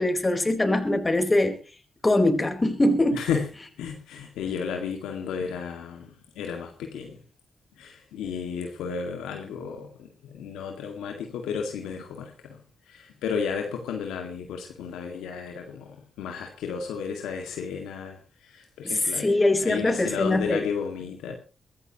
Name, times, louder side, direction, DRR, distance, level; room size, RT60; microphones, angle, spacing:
voice 1, 0.0-1.6 2.0-3.2 19.2-20.6, left 1 dB, 30° left, 6 dB, 4.2 m, -22 dB
voice 2, 3.1-3.5 3.8-7.2 7.7-12.6 12.9-19.3 19.6-21.4, left 6 dB, 85° left, 3 dB, 2.0 m, -33 dB
23.0 x 14.0 x 3.0 m, 0.34 s
supercardioid pair, 45°, 0 cm